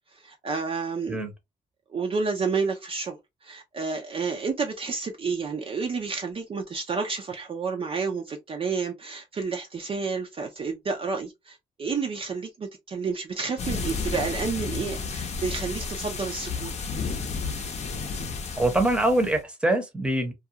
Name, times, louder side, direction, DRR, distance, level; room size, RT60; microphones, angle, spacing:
voice 1, 0.1-1.2 1.9-3.2 3.4-16.7, right 4 dB, 40° right, 0.5 m, -30 dB
sound 1, 13.6-19.4, left 4 dB, 45° left, 0.7 m, -32 dB
voice 2, 18.6-20.3, right 1 dB, 5° right, 0.8 m, -24 dB
2.4 x 2.3 x 2.8 m
cardioid pair, 110°, 15 cm